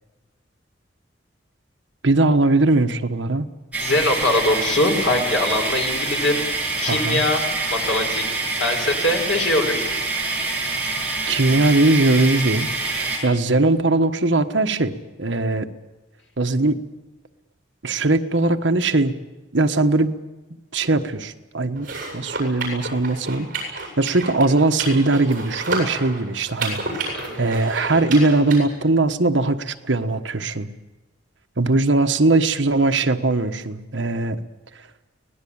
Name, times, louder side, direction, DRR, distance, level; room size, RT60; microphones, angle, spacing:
voice 1, 2.0-3.5 6.9-7.2 11.3-12.7 13.2-14.9 15.2-15.7 16.4-16.8 17.8-19.2 19.5-20.2 20.7-21.9 22.1-30.7 31.6-34.4, right 2 dB, 70° right, 7 dB, 1.3 m, -20 dB
sound 1, 3.7-13.2, right 3 dB, 5° right, 7.7 m, -26 dB
voice 2, 3.8-6.4 6.8-7.4 7.7-9.9 27.1-27.4, left 2 dB, 90° left, 2 dB, 5.6 m, -22 dB
sound 2, 21.8-28.6, right 3 dB, 45° right, 7.7 m, -31 dB
24.5 x 18.5 x 8.8 m, 1.2 s
head